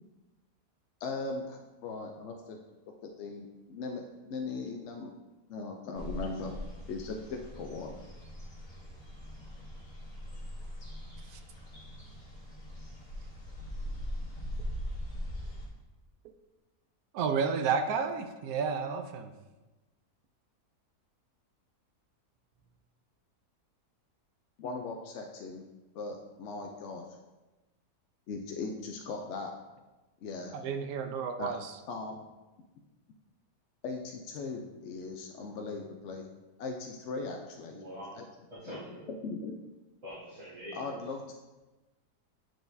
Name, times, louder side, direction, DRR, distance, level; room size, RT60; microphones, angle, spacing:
voice 1, 1.0-2.6 3.0-5.1 5.5-6.5 6.9-8.0 24.6-25.6 25.9-27.1 28.3-29.5 30.2-30.6 31.4-31.5 31.9-32.2 33.8-36.3 36.6-37.8 38.2-38.3 38.7-38.8 39.2-39.6 40.7-41.3, left 3 dB, 65° left, 2 dB, 0.7 m, -39 dB
sound 1, 6.0-15.7, equal, 30° left, 1.4 m, -41 dB
voice 2, 17.1-19.3 30.5-31.7, right 6 dB, 75° right, 7 dB, 1.0 m, -31 dB
voice 3, 37.7-38.1 38.5-39.1 40.0-41.0, equal, 25° right, -15 dB, 2.3 m, -44 dB
8.8 x 4.6 x 2.6 m, 1.1 s
omnidirectional pair, 1.6 m